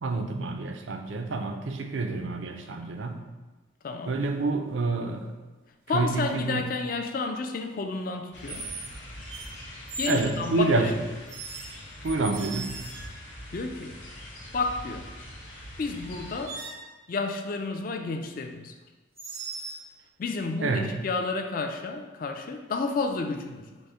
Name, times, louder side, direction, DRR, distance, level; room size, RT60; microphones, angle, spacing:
voice 1, 0.0-3.2 4.1-5.3 5.9-6.7 10.0-10.9 12.0-12.8 20.6-20.9, right 3 dB, 70° right, 5 dB, 0.5 m, -28 dB
voice 2, 3.8-4.2 5.9-8.7 10.0-10.9 13.5-14.0 14.5-15.1 15.8-16.6 17.1-18.7 20.2-23.6, left 3 dB, 45° left, 5 dB, 0.3 m, -31 dB
sound 1, 4.1-4.5 6.2-6.6 8.5-9.0 9.3-10.3 11.3-13.3 15.5-15.6 16.0-16.9 19.2-19.8, right 3 dB, 90° right, 0.9 m, -39 dB
sound 2, 8.3-16.5, left 1 dB, 75° left, 1.1 m, -43 dB
5.2 x 2.1 x 4.7 m, 1.2 s
head